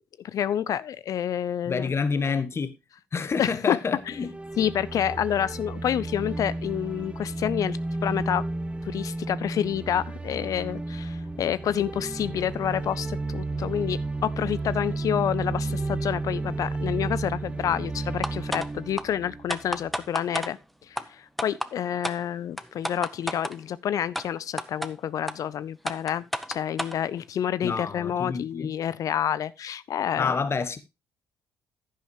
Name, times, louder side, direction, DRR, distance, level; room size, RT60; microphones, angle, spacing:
voice 1, 0.2-1.8 3.4-3.8 4.1-4.2 4.6-8.5 8.8-20.6 20.9-30.3, left 10 dB, 50° left, 0.4 m, -28 dB
voice 2, 1.7-2.7 3.1-4.3 27.6-28.7 30.2-30.8, left 5 dB, 35° left, 1.3 m, -28 dB
sound 1, 4.0-20.1, right 2 dB, 15° right, 1.4 m, -32 dB
sound 2, 18.2-18.7 19.0-19.1 19.5-20.5 21.0-21.1 21.4-21.7 22.0-22.2 22.6-23.5 24.2-24.3 24.6-24.9 25.3-25.4 25.9-27.0, equal, ahead, 1.0 m, -30 dB
11.0 x 10.5 x 3.0 m
hypercardioid pair, 50°, 7 cm